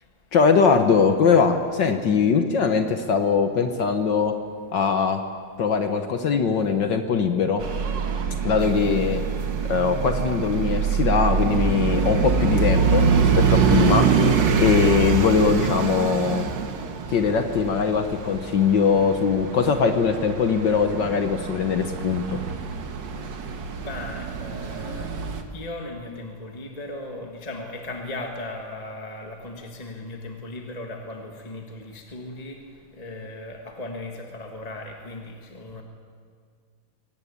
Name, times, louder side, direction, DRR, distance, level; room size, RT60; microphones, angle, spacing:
voice 1, 0.3-4.3 4.7-5.2 5.6-7.6 8.4-9.2 9.7-14.1 14.6-16.5 17.1-22.4, left 5 dB, 60° left, 7 dB, 1.7 m, -21 dB
sound 1, 7.6-25.4, right 6 dB, 60° right, 2.0 m, -24 dB
voice 2, 23.8-35.8, left 2 dB, 20° left, 2 dB, 1.6 m, -37 dB
24.0 x 18.0 x 8.6 m, 2.1 s
omnidirectional pair, 2.4 m